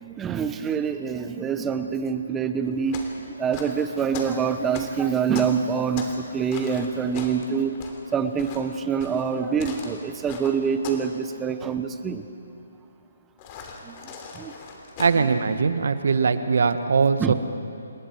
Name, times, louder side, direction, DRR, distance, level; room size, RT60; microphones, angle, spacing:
voice 1, 0.0-3.0 3.4-7.8 8.1-12.2 13.8-14.5 17.2-17.3, right 6 dB, 10° right, 8 dB, 1.0 m, -26 dB
sound 1, 2.6-6.3 6.5-11.1 11.4-11.7 13.4-15.2, left 5 dB, 30° left, 3.1 m, -39 dB
voice 2, 15.0-17.3, right 5 dB, 65° right, 10 dB, 1.4 m, -21 dB
28.0 x 20.0 x 4.7 m, 2.6 s
hypercardioid pair, 155°, 0 cm